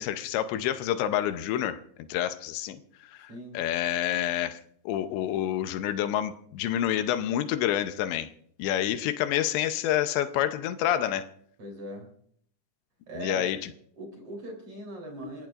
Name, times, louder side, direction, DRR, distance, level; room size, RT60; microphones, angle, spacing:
voice 1, 0.0-1.8 2.1-2.8 3.1-4.6 4.9-8.3 8.6-11.3 13.2-13.6, left 11 dB, 85° left, 10 dB, 3.1 m, -28 dB
voice 2, 3.3-3.6 11.6-12.1 13.1-13.6 14.0-15.5, right 1 dB, 35° right, 1 dB, 4.0 m, -40 dB
28.0 x 15.5 x 2.5 m, 0.65 s
omnidirectional pair, 5.0 m